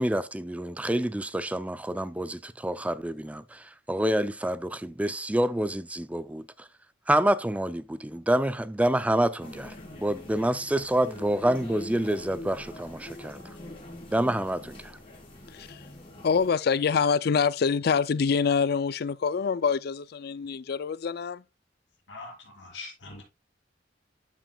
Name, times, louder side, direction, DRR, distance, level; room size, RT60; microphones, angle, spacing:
voice 1, 0.0-6.7 7.1-13.4 14.1-15.0, right 1 dB, 10° right, 0.4 m, -27 dB
sound 1, 9.4-16.5, left 1 dB, 30° left, 3.8 m, -44 dB
voice 2, 15.5-15.8 16.2-21.4, left 6 dB, 60° left, 0.4 m, -25 dB
voice 3, 22.1-23.2, left 3 dB, 85° left, 3.9 m, -42 dB
12.0 x 5.9 x 2.3 m
head